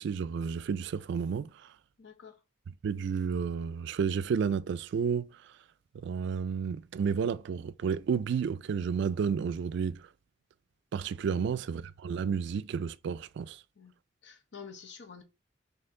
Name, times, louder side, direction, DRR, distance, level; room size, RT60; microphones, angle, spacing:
voice 1, 0.0-1.7 2.8-5.3 6.0-10.1 10.9-13.6, right 6 dB, 65° right, 0.3 m, -31 dB
voice 2, 2.0-2.4 11.3-11.5 13.8-13.9 14.2-15.2, left 6 dB, 70° left, 0.9 m, -48 dB
4.4 x 2.8 x 3.6 m
head